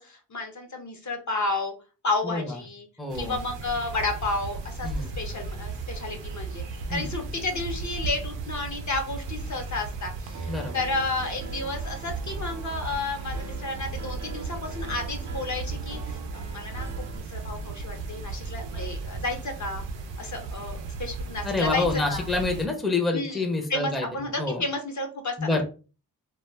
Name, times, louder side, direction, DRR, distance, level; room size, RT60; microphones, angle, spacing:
voice 1, 0.0-1.7 2.0-2.9 3.1-4.9 5.2-16.9 17.1-19.8 20.2-22.3 23.1-23.4 23.7-25.6, left 2 dB, 45° left, 4 dB, 0.7 m, -32 dB
voice 2, 2.2-2.6 3.0-3.4 4.8-5.1 6.9-7.1 10.5-10.8 21.4-24.1 24.4-24.6 25.4-25.6, left 3 dB, ahead, 3 dB, 0.6 m, -27 dB
sound 1, 3.1-22.7, right 3 dB, 85° right, 0.6 m, -36 dB
Piano, 10.3-17.2, right 4 dB, 45° right, 0.7 m, -41 dB
2.2 x 2.0 x 3.1 m, 0.35 s
cardioid pair, 60°, 42 cm